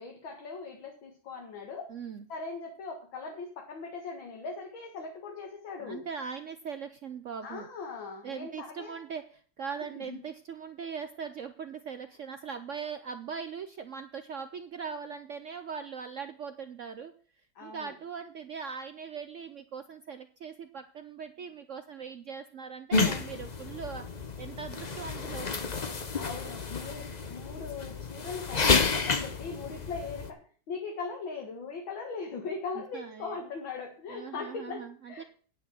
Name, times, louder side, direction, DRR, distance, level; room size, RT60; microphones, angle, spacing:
voice 1, 0.0-1.9 2.3-6.1 7.4-9.0 9.8-10.2 17.6-17.9 25.5-35.2, left 4 dB, 75° left, 1 dB, 2.4 m, -40 dB
voice 2, 1.9-2.2 5.8-7.7 8.2-17.1 17.6-24.1 24.4-25.6 26.2-26.3 32.9-33.4 34.1-35.2, right 6 dB, 80° right, 9 dB, 0.6 m, -40 dB
sound 1, 22.9-30.3, left 4 dB, 50° left, 0.4 m, -30 dB
9.7 x 6.2 x 7.5 m, 0.43 s
omnidirectional pair, 2.2 m